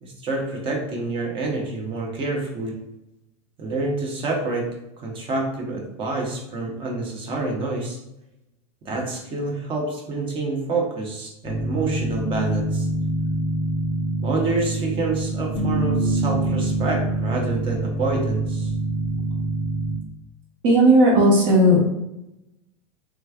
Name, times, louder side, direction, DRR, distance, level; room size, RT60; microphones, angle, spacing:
voice 1, 0.0-2.8 3.6-8.0 8.8-12.9 14.2-18.7, right 3 dB, 30° right, 0 dB, 0.9 m, -27 dB
sound 1, 11.4-20.0, right 2 dB, 30° left, 0.6 m, -25 dB
voice 2, 20.6-21.8, right 1 dB, 55° right, -3 dB, 1.4 m, -15 dB
3.4 x 3.0 x 2.3 m, 0.88 s
supercardioid pair, 130°, 18 cm